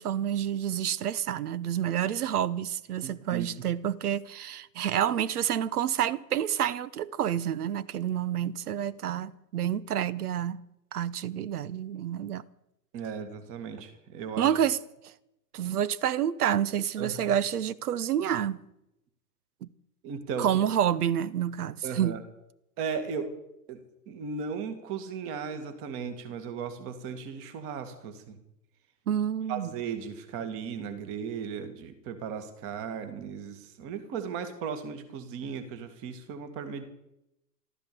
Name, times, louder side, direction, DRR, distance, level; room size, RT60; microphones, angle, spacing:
voice 1, 0.0-10.6 10.9-12.4 14.4-14.8 15.0-15.1 15.5-18.6 19.6-19.7 20.4-22.2 29.1-29.7, right 10 dB, 65° right, 1.0 m, -28 dB
voice 2, 3.0-3.6 12.9-14.5 17.0-17.3 20.0-20.5 21.8-22.2 22.8-23.3 23.7-28.4 29.5-36.9, right 6 dB, 25° right, 2.1 m, -36 dB
14.5 x 13.5 x 6.9 m
hypercardioid pair, 145°, 49 cm